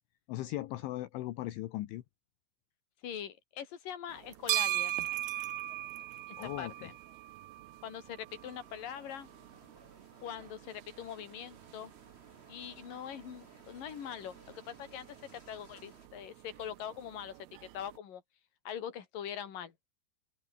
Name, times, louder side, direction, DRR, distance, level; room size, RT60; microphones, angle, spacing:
voice 1, 0.3-2.0 6.4-6.9, left 16 dB, 75° left, 3.5 m, -38 dB
voice 2, 3.0-4.9 6.3-6.9 7.8-9.3 10.2-11.9 12.5-15.1 15.3-17.4 17.7-18.2 18.6-19.7, left 9 dB, 45° left, 4.3 m, -43 dB
sound 1, 4.1-18.0, right 16 dB, 80° right, 2.2 m, -41 dB
sound 2, 8.3-16.1, right 1 dB, 10° right, 6.1 m, -60 dB
omnidirectional pair, 5.8 m